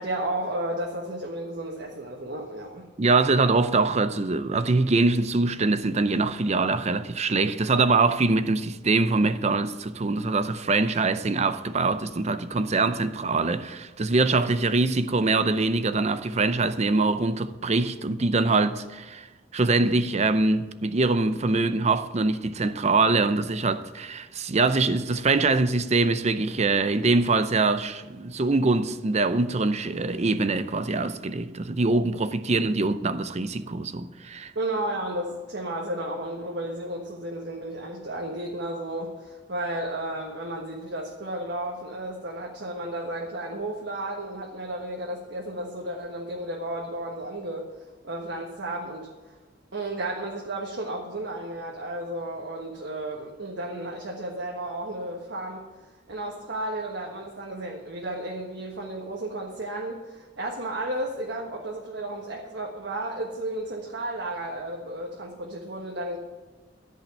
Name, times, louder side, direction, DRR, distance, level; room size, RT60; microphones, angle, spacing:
voice 1, 0.0-2.9 34.5-47.7 48.0-49.1 49.7-55.6 56.1-66.2, right 1 dB, 70° right, 1.5 m, -33 dB
voice 2, 3.0-19.3 19.5-34.5, right 3 dB, 35° right, 0.6 m, -23 dB
13.5 x 5.5 x 8.8 m
head